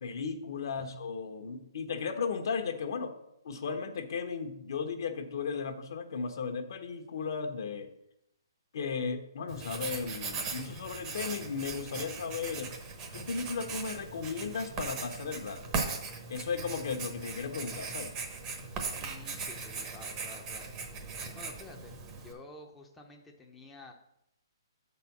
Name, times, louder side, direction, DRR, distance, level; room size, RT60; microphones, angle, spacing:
voice 1, 0.0-3.1 3.4-7.9 8.7-12.7 13.1-15.6 16.3-18.1, left 5 dB, 60° left, 7 dB, 1.0 m, -35 dB
Writing, 9.5-22.3, right 4 dB, 25° right, 0.9 m, -39 dB
voice 2, 19.0-20.7 21.3-22.0 22.2-23.9, left 2 dB, 5° left, -1 dB, 0.7 m, -50 dB
7.0 x 4.1 x 5.9 m, 0.79 s
hypercardioid pair, 155°, 2 cm